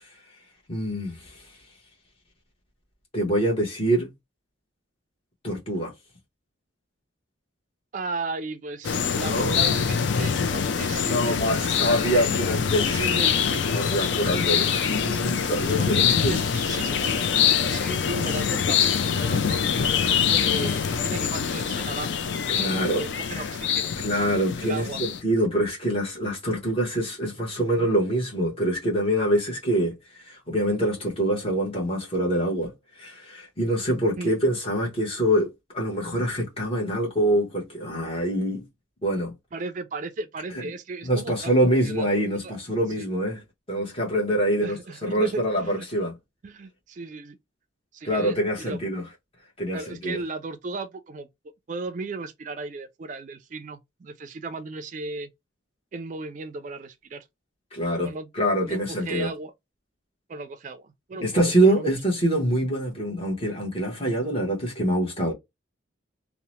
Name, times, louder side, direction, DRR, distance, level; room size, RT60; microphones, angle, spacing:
voice 1, 0.7-1.4 3.1-4.1 5.4-5.9 9.2-9.6 11.0-13.2 13.7-16.4 22.5-23.1 24.0-32.7 33.0-38.6 39.0-39.3 41.0-43.4 43.7-46.1 48.0-49.0 49.6-50.2 57.7-59.3 61.2-65.3, right 1 dB, 30° left, 0.9 m, -25 dB
voice 2, 7.9-11.8 12.8-13.7 15.8-22.2 22.6-23.9 24.6-25.0 34.2-34.3 39.5-42.6 43.0-43.1 44.6-45.9 46.4-47.4 47.9-48.8 49.7-51.3 51.7-55.3 55.9-57.2 57.9-58.3 58.6-59.5 60.3-61.9, right 3 dB, 40° right, 0.3 m, -36 dB
sound 1, 8.8-25.2, left 7 dB, 65° left, 0.4 m, -24 dB
2.7 x 2.0 x 3.0 m
head